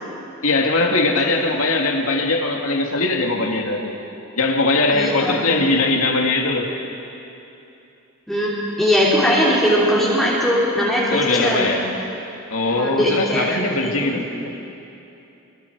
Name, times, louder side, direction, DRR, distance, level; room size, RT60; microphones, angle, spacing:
voice 1, 0.4-4.0 4.4-6.7 11.1-11.9 12.5-14.5, left 2 dB, 80° left, 1 dB, 2.4 m, -20 dB
voice 2, 4.9-5.5 8.3-8.5 8.8-11.9 12.6-14.2, equal, ahead, -8 dB, 3.4 m, -20 dB
27.5 x 23.5 x 4.8 m, 2.8 s
head